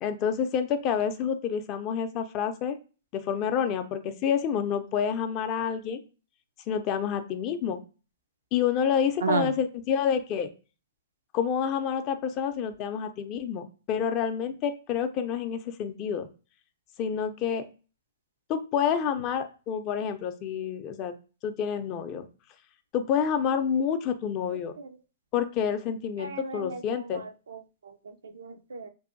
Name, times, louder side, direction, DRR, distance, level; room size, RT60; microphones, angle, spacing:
voice 1, 0.0-2.8 3.1-6.0 6.7-7.8 8.5-10.5 11.3-16.3 17.0-17.7 18.5-21.2 21.4-22.3 22.9-24.8 25.3-27.2, left 7 dB, 35° left, 9 dB, 0.4 m, -28 dB
voice 2, 26.2-27.6 27.8-28.9, right 4 dB, 85° right, 9 dB, 0.4 m, -33 dB
2.6 x 2.4 x 2.5 m, 0.34 s
hypercardioid pair, 125°, 0 cm